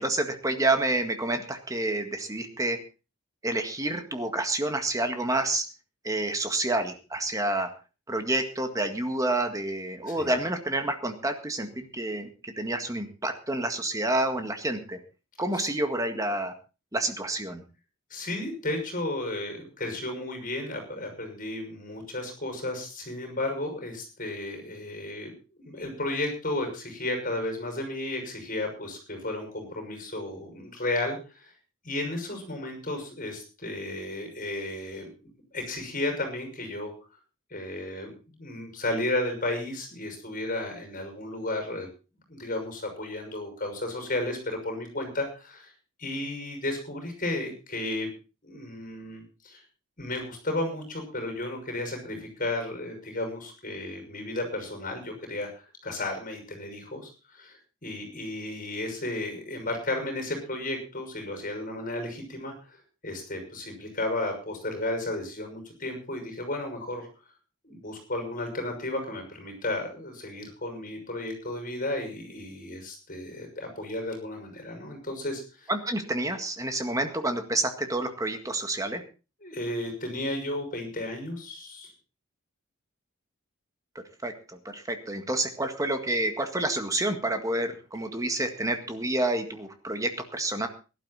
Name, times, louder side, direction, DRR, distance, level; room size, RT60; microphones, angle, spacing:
voice 1, 0.0-2.8 3.4-5.7 6.0-7.7 8.1-15.0 15.4-16.5 16.9-17.6 75.7-79.0 84.2-90.7, right 2 dB, 15° right, 6 dB, 1.8 m, -29 dB
voice 2, 10.0-10.3 15.5-15.7 18.1-25.3 25.6-31.5 31.8-36.9 37.5-41.9 42.3-45.7 46.0-48.1 48.4-49.6 50.0-62.8 63.0-67.1 67.6-75.7 79.4-81.9, left 2 dB, 40° left, 4 dB, 6.1 m, -33 dB
17.5 x 12.0 x 4.2 m, 0.33 s
head